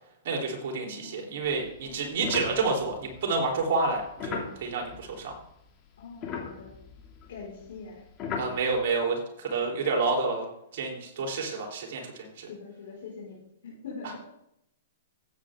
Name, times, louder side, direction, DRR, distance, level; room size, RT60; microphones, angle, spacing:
voice 1, 0.2-5.4 8.4-10.5 10.7-12.5, right 4 dB, 55° right, 1 dB, 3.6 m, -29 dB
voice 2, 0.8-1.4 1.8-2.2 6.0-6.7 7.3-8.0 12.5-14.2, left 4 dB, 70° left, -6 dB, 5.1 m, -43 dB
sound 1, 1.4-5.7 5.9-8.8, left 6 dB, 30° left, 2.6 m, -39 dB
13.5 x 9.0 x 3.7 m, 0.80 s
hypercardioid pair, 130°, 0 cm